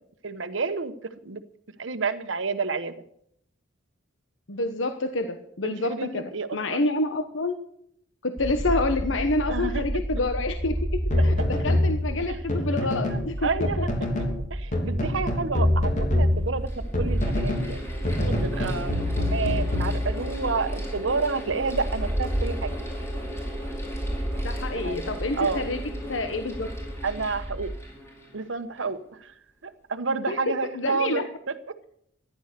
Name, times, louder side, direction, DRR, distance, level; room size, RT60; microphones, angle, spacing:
voice 1, 0.2-0.9 1.2-1.4 1.8-2.9 5.6-6.8 9.5-9.8 12.3-12.4 13.1-13.8 14.5-16.7 17.0-17.8 18.3-22.7 24.7-25.7 27.0-27.7 28.3-29.3 29.6-31.2, right 4 dB, 85° right, 10 dB, 1.1 m, -30 dB
voice 2, 4.5-6.2 6.5-7.6 8.2-10.7 11.1-13.5 24.4-25.8 26.1-26.7 30.3-30.4 30.7-31.2, left 2 dB, 85° left, 8 dB, 1.1 m, -28 dB
sound 1, 8.4-27.8, right 1 dB, 15° right, 1.1 m, -32 dB
sound 2, 11.1-13.3 13.6-14.4 14.7-17.7 18.0-20.5, left 1 dB, 40° left, 3.2 m, -25 dB
Mechanical fan, 16.3-29.0, equal, 15° left, 4.8 m, -39 dB
15.0 x 11.0 x 6.7 m, 0.70 s
head